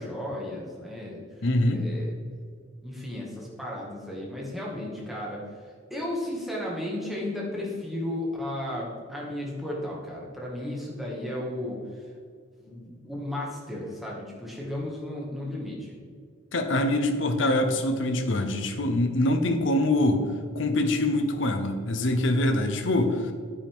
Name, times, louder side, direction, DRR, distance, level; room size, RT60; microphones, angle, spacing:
voice 1, 0.0-1.2 1.7-2.2 2.8-5.4 5.9-11.8 12.6-15.9, left 1 dB, ahead, -4 dB, 2.0 m, -34 dB
voice 2, 1.4-1.9 16.5-20.2 20.5-23.3, left 1 dB, 65° left, 6 dB, 0.9 m, -24 dB
9.6 x 9.3 x 3.7 m, 2.1 s
head